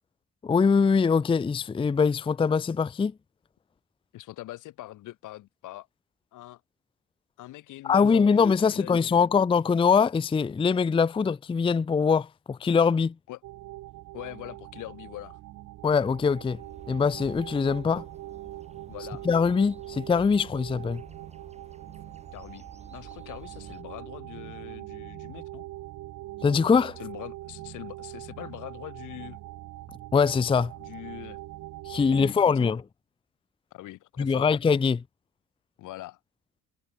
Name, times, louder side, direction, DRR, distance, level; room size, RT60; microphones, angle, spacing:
voice 1, 0.4-3.1 7.8-13.1 15.8-16.6 16.9-18.0 19.2-21.0 26.4-27.0 30.1-30.7 31.9-32.8 34.2-35.0, left 5 dB, 20° left, 0.4 m, -23 dB
voice 2, 4.1-5.9 6.3-6.6 7.4-9.3 13.3-13.4 14.1-15.4 18.9-19.2 22.3-25.7 27.0-29.4 30.8-31.4 32.0-32.8 33.7-34.5 35.8-36.2, left 16 dB, 90° left, 3.0 m, -43 dB
sound 1, 13.4-32.3, right 15 dB, 85° right, 2.1 m, -42 dB
sound 2, 16.5-23.8, right 3 dB, 20° right, 3.6 m, -51 dB
cardioid pair, 90°, 30 cm